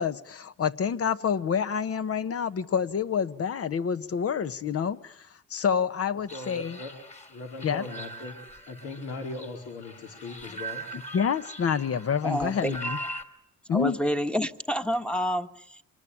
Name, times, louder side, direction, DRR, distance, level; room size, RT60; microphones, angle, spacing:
voice 1, 0.0-6.8 7.6-7.8 10.9-13.0 13.7-14.0, left 7 dB, 50° left, 12 dB, 1.2 m, -28 dB
voice 2, 6.3-6.9 7.3-8.3 8.7-10.8, left 3 dB, 80° left, 1 dB, 4.4 m, -38 dB
sound 1, 6.3-13.2, right 1 dB, 25° left, 2.8 m, -40 dB
voice 3, 12.2-12.8 13.7-15.8, equal, 5° left, 7 dB, 1.4 m, -28 dB
26.0 x 20.0 x 9.9 m, 0.77 s
cardioid pair, 90°, 30 cm